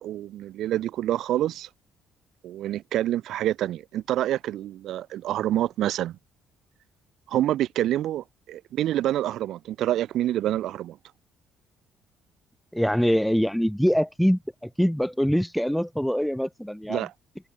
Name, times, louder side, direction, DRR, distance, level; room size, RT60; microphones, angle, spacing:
voice 1, 0.0-1.7 2.4-6.2 7.3-11.0 16.9-17.1, right 13 dB, 65° right, 1.9 m, -27 dB
voice 2, 12.7-17.1, equal, ahead, 1.1 m, -24 dB
hypercardioid pair, 55°, 0 cm